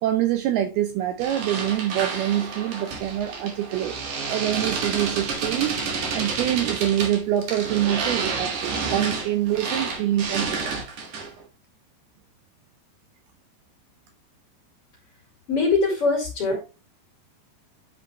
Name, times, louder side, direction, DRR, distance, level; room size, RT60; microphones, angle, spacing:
voice 1, 0.0-3.9 4.3-10.8, right 12 dB, 75° right, 2.4 m, -25 dB
sound 1, 1.2-11.4, right 5 dB, 55° right, 2.5 m, -30 dB
voice 2, 15.5-16.7, left 3 dB, 40° left, 2.7 m, -22 dB
10.0 x 5.1 x 3.2 m
omnidirectional pair, 5.1 m